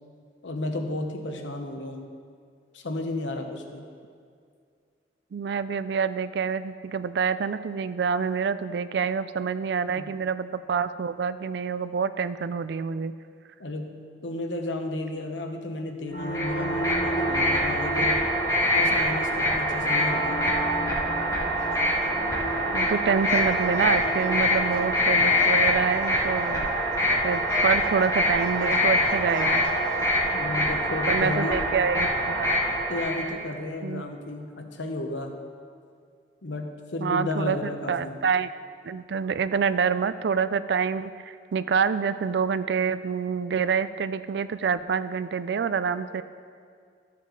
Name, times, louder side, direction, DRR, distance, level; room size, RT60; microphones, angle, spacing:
voice 1, 0.4-2.1 2.7-3.9 10.0-10.1 13.6-18.3 18.7-20.4 30.3-31.7 32.9-35.3 36.4-38.2, left 2 dB, 90° left, 4 dB, 0.9 m, -33 dB
voice 2, 5.3-13.1 22.7-26.9 27.2-29.7 31.1-32.6 33.8-34.0 37.0-38.5 38.8-46.2, right 6 dB, 70° right, 14 dB, 0.3 m, -27 dB
sound 1, 16.1-26.5, right 2 dB, 55° left, 0.8 m, -35 dB
sound 2, 16.2-33.3, equal, 20° left, 1.8 m, -25 dB
sound 3, 21.6-22.1 22.4-30.3, right 1 dB, 40° right, 0.9 m, -39 dB
13.0 x 7.4 x 3.9 m, 2.2 s
head